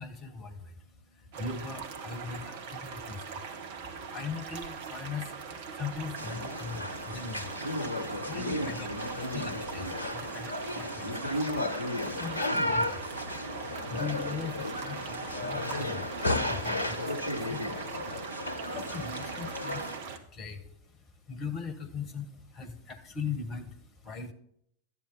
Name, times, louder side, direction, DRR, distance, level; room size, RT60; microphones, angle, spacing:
voice 1, 0.0-11.3 11.7-19.9 20.3-20.7 21.3-24.3, left 5 dB, 30° left, 11 dB, 1.3 m, -41 dB
sound 1, 1.3-20.2, right 5 dB, 50° right, 1.1 m, -41 dB
sound 2, 6.2-20.0, left 1 dB, 80° left, 0.9 m, -34 dB
12.0 x 8.9 x 4.1 m, 0.70 s
figure-of-eight pair, 90°, 0 cm